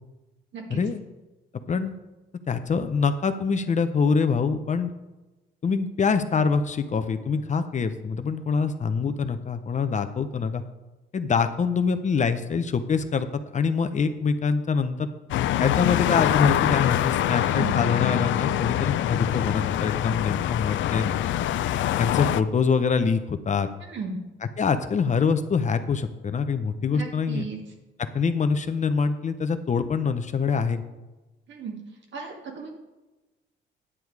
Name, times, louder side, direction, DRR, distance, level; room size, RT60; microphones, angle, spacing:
voice 1, 2.5-4.9 5.6-10.6 11.1-13.3 13.5-15.1 15.6-21.1 22.0-23.7 24.6-27.5 28.1-30.8, left 5 dB, 35° left, 9 dB, 0.7 m, -25 dB
sound 1, 15.3-22.4, left 12 dB, 70° left, 0.4 m, -24 dB
voice 2, 17.4-17.7 23.8-24.2 26.9-27.6 31.5-31.7 32.1-32.7, right 5 dB, 70° right, 1 dB, 2.1 m, -35 dB
9.9 x 6.9 x 4.7 m, 1.1 s
cardioid pair, 90°, 20 cm